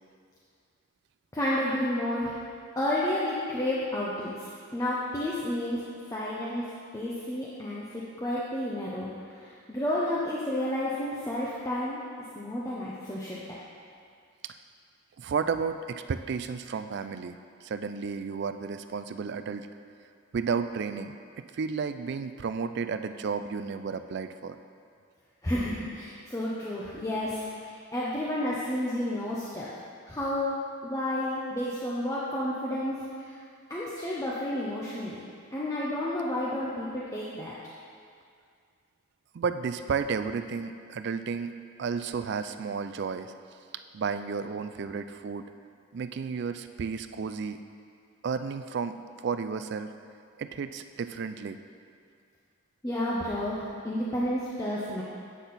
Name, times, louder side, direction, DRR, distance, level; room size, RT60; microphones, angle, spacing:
voice 1, 1.3-2.4 2.8-6.6 6.9-12.0 12.3-13.4 25.4-29.7 30.1-33.4 33.7-35.2 35.5-37.5 52.8-55.0, left 1 dB, 15° left, -7 dB, 0.6 m, -31 dB
voice 2, 15.2-19.7 20.3-24.6 39.3-41.5 41.8-43.3 43.9-45.5 45.9-47.6 48.2-49.0 49.2-49.9 50.4-51.6, right 5 dB, 50° right, 10 dB, 0.3 m, -32 dB
8.4 x 6.0 x 4.1 m, 2.2 s
head